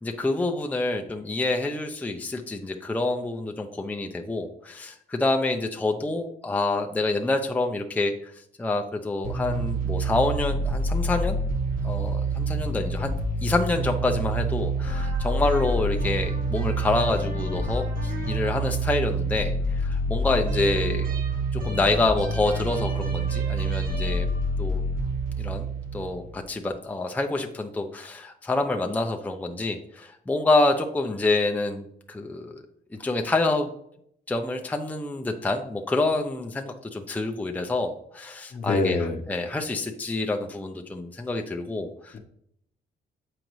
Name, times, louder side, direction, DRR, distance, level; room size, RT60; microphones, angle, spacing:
voice 1, 0.0-8.3 8.6-11.4 11.8-13.1 13.4-21.1 21.5-24.3 24.6-24.8 25.4-25.7 25.9-32.5 33.0-33.7 34.3-42.1, left 2 dB, 10° left, 3 dB, 0.5 m, -27 dB
sound 1, 9.2-26.6, right 2 dB, 50° right, 1.5 m, -27 dB
voice 2, 38.5-39.2 42.1-42.2, left 3 dB, 45° left, 7 dB, 0.8 m, -25 dB
7.6 x 5.2 x 3.1 m, 0.73 s
cardioid pair, 110°, 19 cm